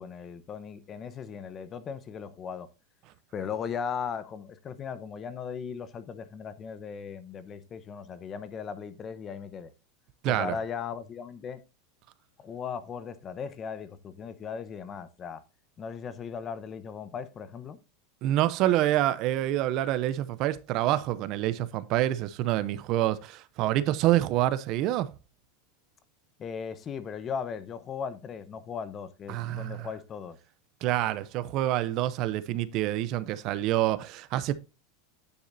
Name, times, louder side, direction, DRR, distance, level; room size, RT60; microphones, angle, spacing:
voice 1, 0.0-2.7 3.3-9.7 10.2-11.6 12.4-15.4 15.8-17.8 26.4-30.4, left 6 dB, 30° left, 0.9 m, -37 dB
voice 2, 10.2-10.6 18.2-25.1 29.3-29.9 30.8-34.5, right 14 dB, 45° right, 0.7 m, -27 dB
9.6 x 7.1 x 2.7 m
supercardioid pair, 140°, 0 cm